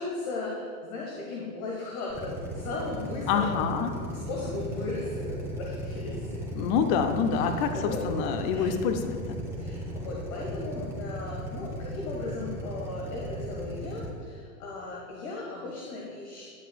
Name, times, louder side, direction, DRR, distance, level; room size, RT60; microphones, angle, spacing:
voice 1, 0.0-6.4 7.3-8.0 8.5-8.7 9.6-16.4, left 3 dB, 60° left, -3 dB, 1.5 m, -36 dB
Drill, 2.1-14.1, right 1 dB, 5° right, 1.6 m, -37 dB
voice 2, 3.3-3.9 6.6-7.8 8.0-9.4, left 6 dB, 40° left, 7 dB, 0.6 m, -26 dB
10.5 x 7.8 x 2.3 m, 2.2 s
hypercardioid pair, 105°, 46 cm